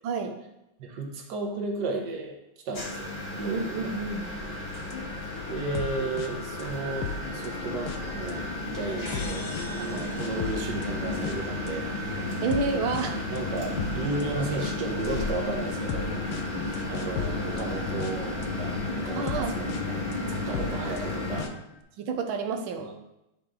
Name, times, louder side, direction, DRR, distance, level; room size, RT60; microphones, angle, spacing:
voice 1, 0.0-0.3 3.5-4.3 9.9-10.1 12.4-13.2 16.5-16.8 19.2-19.5 20.5-20.8 22.0-22.9, right 4 dB, 75° right, 5 dB, 1.6 m, -30 dB
voice 2, 0.8-2.4 2.6-3.9 4.4-4.7 5.5-11.9 13.3-16.3 16.9-21.5 22.8-22.9, right 3 dB, 60° right, 1 dB, 1.7 m, -34 dB
sound 1, 2.7-21.4, left 2 dB, 30° left, 1.1 m, -33 dB
sound 2, 4.9-18.5 18.9-21.8, left 7 dB, 80° left, 1.5 m, -38 dB
sound 3, 9.1-11.6, left 3 dB, 65° left, 2.0 m, -45 dB
10.0 x 4.8 x 3.8 m, 0.88 s
omnidirectional pair, 2.3 m